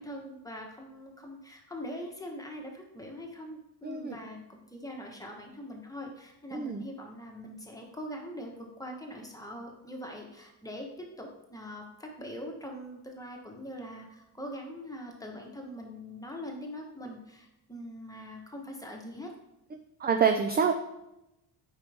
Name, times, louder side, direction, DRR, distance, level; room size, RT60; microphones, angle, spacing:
voice 1, 0.0-19.3, equal, 10° left, 1 dB, 1.1 m, -42 dB
voice 2, 3.8-4.2 6.5-6.8 20.0-20.7, right 6 dB, 25° right, 5 dB, 0.3 m, -26 dB
8.9 x 4.7 x 3.5 m, 0.91 s
cardioid pair, 135°, 46 cm